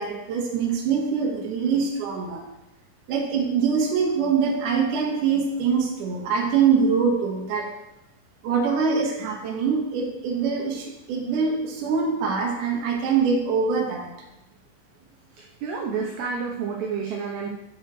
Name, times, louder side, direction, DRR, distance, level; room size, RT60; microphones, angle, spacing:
voice 1, 0.0-2.4 3.1-7.7 8.4-14.1, right 5 dB, 60° right, -2 dB, 2.2 m, -24 dB
voice 2, 15.6-17.5, right 5 dB, 75° right, -2 dB, 2.5 m, -29 dB
9.9 x 6.6 x 3.2 m, 0.91 s
omnidirectional pair, 5.7 m